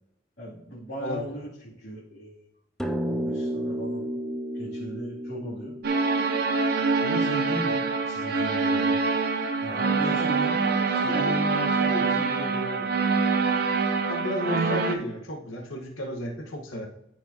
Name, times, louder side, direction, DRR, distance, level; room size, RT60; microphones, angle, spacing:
voice 1, 0.4-2.3 3.0-4.1 4.5-5.7 7.0-7.8 8.0-9.0 9.6-10.6 10.9-12.9, right 1 dB, 55° left, -9 dB, 2.6 m, -36 dB
sound 1, 2.8-7.5, equal, ahead, 0.4 m, -33 dB
sound 2, 5.8-14.9, right 4 dB, 50° right, 0.7 m, -25 dB
voice 2, 10.6-11.3 11.8-12.0 14.1-16.9, equal, 85° left, 2 dB, 1.3 m, -33 dB
13.0 x 4.8 x 2.8 m, 0.85 s
head